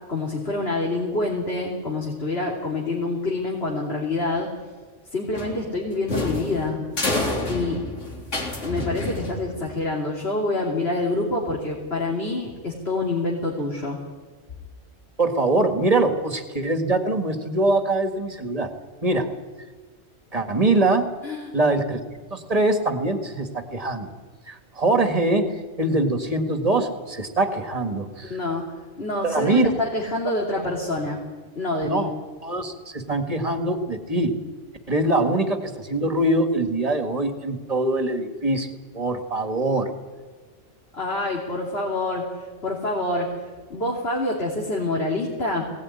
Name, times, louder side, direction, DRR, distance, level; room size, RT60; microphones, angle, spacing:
voice 1, 0.1-4.5 5.1-6.8 7.5-7.8 8.6-14.0 21.2-21.5 28.2-31.2 31.5-32.1 40.9-43.4 43.7-45.7, left 2 dB, 55° left, -2 dB, 3.3 m, -26 dB
sound 1, 5.3-9.8, left 2 dB, 70° left, 3.7 m, -29 dB
voice 2, 15.2-18.7 19.0-19.3 20.3-21.1 21.5-22.0 22.3-24.1 24.5-28.3 29.2-29.7 31.8-32.1 32.4-34.4 34.9-38.7 38.9-39.9, right 2 dB, 30° right, 6 dB, 2.1 m, -23 dB
21.0 x 18.0 x 9.9 m, 1.4 s
omnidirectional pair, 1.3 m